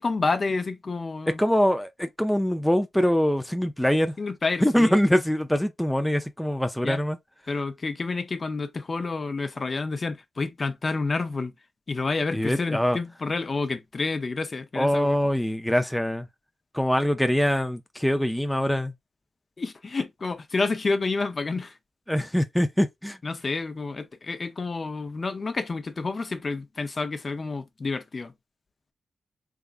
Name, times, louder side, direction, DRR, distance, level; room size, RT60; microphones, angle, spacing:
voice 1, 0.0-1.4 4.2-5.0 6.8-7.0 7.5-11.5 11.9-15.1 19.6-21.7 23.2-28.3, left 3 dB, 45° left, 0.7 m, -29 dB
voice 2, 1.4-4.1 4.6-7.2 12.3-13.0 14.8-16.3 16.7-18.9 22.1-23.2, equal, 5° left, 0.5 m, -23 dB
3.7 x 3.5 x 2.5 m
cardioid pair, 80°, 0 cm